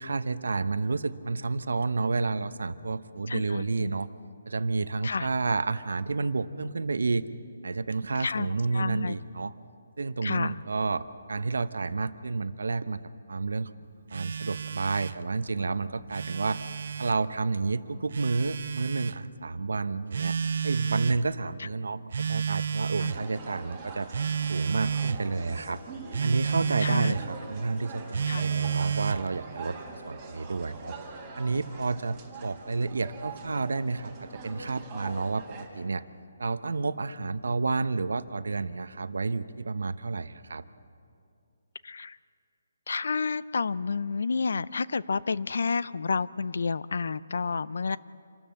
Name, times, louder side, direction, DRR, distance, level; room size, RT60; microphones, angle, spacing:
voice 1, 0.0-4.1 4.5-7.2 7.6-9.5 10.0-13.0 13.3-13.7 14.1-16.6 17.0-20.4 20.6-24.1 24.5-25.8 26.2-31.0 31.4-36.0 36.4-40.6, right 3 dB, 85° right, 13 dB, 0.8 m, -30 dB
voice 2, 3.3-3.9 5.0-5.3 8.2-9.1 10.2-10.6 21.6-21.7 23.0-23.1 26.8-27.1 28.3-28.4 41.8-42.2 42.9-48.0, left 4 dB, 60° left, 18 dB, 0.5 m, -30 dB
Telephone, 14.1-15.2 16.0-17.2 18.1-19.2 20.1-21.2 22.1-23.2 24.1-25.2 26.1-27.2 28.1-29.3, right 7 dB, 50° right, 0.5 m, -30 dB
sound 1, 23.0-35.7, right 3 dB, 15° right, 2.0 m, -43 dB
27.0 x 13.0 x 7.6 m, 2.4 s
hypercardioid pair, 175°, 0 cm